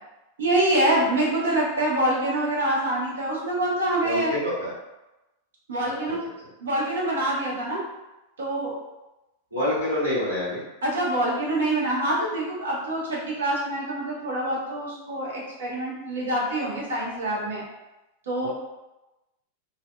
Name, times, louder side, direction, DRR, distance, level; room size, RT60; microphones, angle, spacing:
voice 1, 0.4-4.3 5.7-6.3 6.6-7.8 8.4-8.8 10.8-17.6 18.3-18.5, right 1 dB, 65° right, -4 dB, 0.7 m, -25 dB
voice 2, 4.0-4.7 9.5-10.6 18.4-18.5, left 1 dB, 85° right, -11 dB, 1.1 m, -26 dB
2.6 x 2.2 x 2.2 m, 1.0 s
figure-of-eight pair, 90°, 0 cm